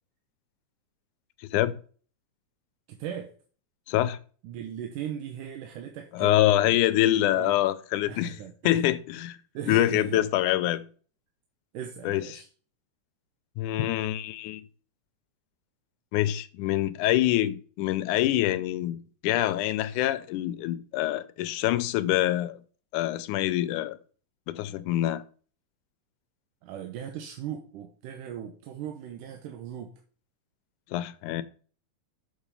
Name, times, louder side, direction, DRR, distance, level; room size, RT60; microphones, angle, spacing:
voice 1, 2.9-3.3 4.4-6.8 7.3-7.6 8.1-8.8 9.5-10.2 11.7-12.5 26.6-30.0, right 9 dB, 85° right, 2.5 m, -38 dB
voice 2, 3.9-4.2 6.1-8.4 8.6-9.4 9.7-10.9 12.0-12.4 13.6-14.6 16.1-22.6 22.9-24.0 24.5-25.2 30.9-31.4, left 14 dB, 80° left, 2.1 m, -25 dB
7.3 x 5.6 x 6.7 m
omnidirectional pair, 3.6 m